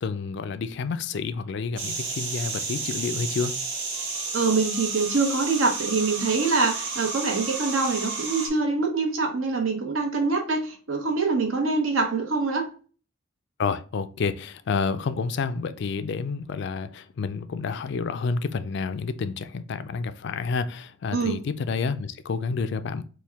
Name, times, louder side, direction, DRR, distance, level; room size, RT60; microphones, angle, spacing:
voice 1, 0.0-3.6 13.6-23.0, left 5 dB, 60° left, 0.3 m, -29 dB
sound 1, 1.8-8.5, right 4 dB, 60° right, 1.5 m, -31 dB
voice 2, 4.3-12.7 21.1-21.4, right 4 dB, 80° right, 1.1 m, -25 dB
4.4 x 2.2 x 3.4 m
head